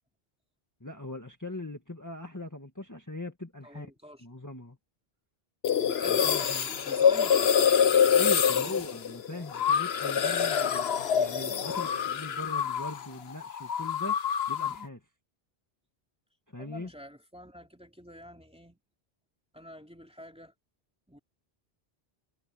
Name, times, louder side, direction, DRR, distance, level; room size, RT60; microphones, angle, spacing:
voice 1, 0.8-3.9 4.2-4.8 6.1-6.7 8.1-10.9 11.2-14.2 14.5-15.0 16.5-16.9, left 2 dB, 15° left, 1.9 m, -40 dB
voice 2, 3.6-4.2 6.0-8.3 8.5-8.9 16.6-18.8 19.5-20.5 21.1-21.2, equal, 5° right, 2.6 m, -47 dB
sound 1, 5.6-13.1 13.3-14.8, left 7 dB, 80° left, 1.1 m, -26 dB
omnidirectional pair, 1.0 m